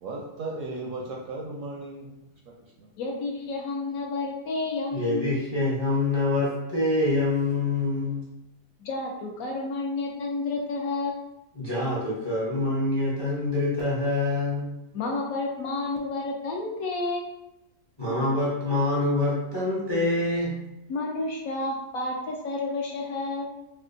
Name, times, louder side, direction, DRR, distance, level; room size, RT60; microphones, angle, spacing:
voice 1, 0.0-2.1, right 2 dB, 70° right, -2 dB, 0.8 m, -35 dB
voice 2, 3.0-5.2 8.8-11.2 14.9-17.3 20.9-23.5, left 3 dB, 70° left, -1 dB, 0.9 m, -30 dB
voice 3, 4.9-8.3 11.6-14.7 18.0-20.5, left 2 dB, 30° left, -7 dB, 0.4 m, -25 dB
4.2 x 2.2 x 2.5 m, 0.90 s
omnidirectional pair, 1.7 m